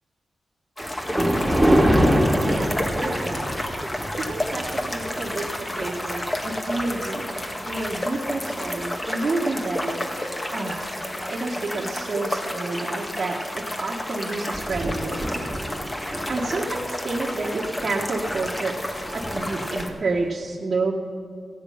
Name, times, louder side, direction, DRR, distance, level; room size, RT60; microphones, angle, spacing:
sound 1, 0.8-19.9, left 1 dB, 25° left, 1.9 m, -31 dB
Thunder, 0.8-9.3 9.8-10.1 10.8-10.9 11.2-11.3 13.5-13.7 14.0-14.1 14.3-20.3, equal, 15° right, 2.1 m, -27 dB
voice 1, 2.4-3.6 4.2-7.3 7.6-10.0 10.5-10.9 11.3-15.5 16.3-18.8 19.1-20.9, right 3 dB, 60° right, -4 dB, 1.4 m, -29 dB
15.5 x 10.0 x 5.7 m, 2.3 s
cardioid pair, 45°, 0 cm